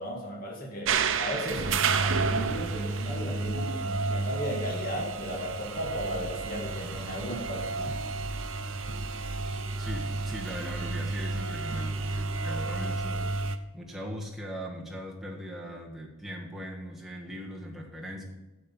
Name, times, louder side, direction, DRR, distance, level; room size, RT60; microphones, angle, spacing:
voice 1, 0.0-1.7 2.0-8.0, equal, 40° left, -2 dB, 1.9 m, -35 dB
sound 1, 0.9-13.6, right 4 dB, 65° right, 0.6 m, -31 dB
sound 2, 7.1-13.0, equal, 85° left, 2.8 m, -49 dB
voice 2, 9.8-13.3 13.7-18.2, equal, ahead, -3 dB, 1.5 m, -39 dB
9.7 x 7.7 x 5.5 m, 1.1 s
head